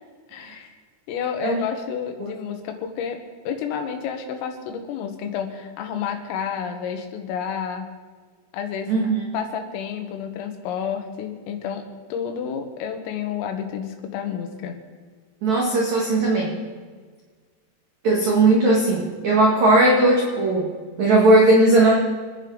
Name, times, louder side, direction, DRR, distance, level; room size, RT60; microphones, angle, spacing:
voice 1, 0.3-0.7 1.1-3.2 3.5-7.9 8.5-9.0 9.3-14.8, left 7 dB, 85° left, 5 dB, 4.1 m, -30 dB
voice 2, 8.9-9.2 15.4-16.5 18.0-20.7 21.0-22.0, right 2 dB, 55° right, -3 dB, 2.3 m, -17 dB
27.5 x 10.5 x 4.0 m, 1.5 s
omnidirectional pair, 5.8 m